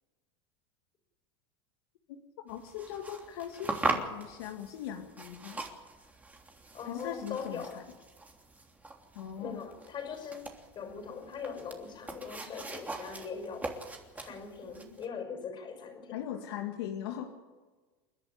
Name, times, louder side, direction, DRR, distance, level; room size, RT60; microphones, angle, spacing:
voice 1, 2.4-5.6 6.8-7.8 9.2-9.6 16.1-17.3, left 10 dB, 75° left, 3 dB, 2.1 m, -40 dB
sound 1, 2.5-15.1, right 2 dB, 10° right, 3.3 m, -41 dB
voice 2, 6.7-7.8 9.4-13.7 14.1-16.2, left 6 dB, 35° left, 7 dB, 5.7 m, -41 dB
29.5 x 11.0 x 9.8 m, 1.3 s
supercardioid pair, 110°, 13 cm